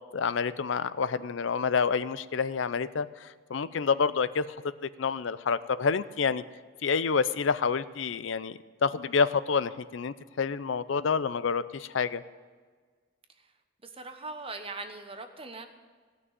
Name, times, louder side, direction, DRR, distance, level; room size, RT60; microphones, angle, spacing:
voice 1, 0.1-4.5 5.0-6.4 6.8-12.2, left 5 dB, 70° left, 16 dB, 0.5 m, -28 dB
voice 2, 13.8-15.7, right 3 dB, 30° right, 7 dB, 1.0 m, -40 dB
16.5 x 6.1 x 9.4 m, 1.5 s
head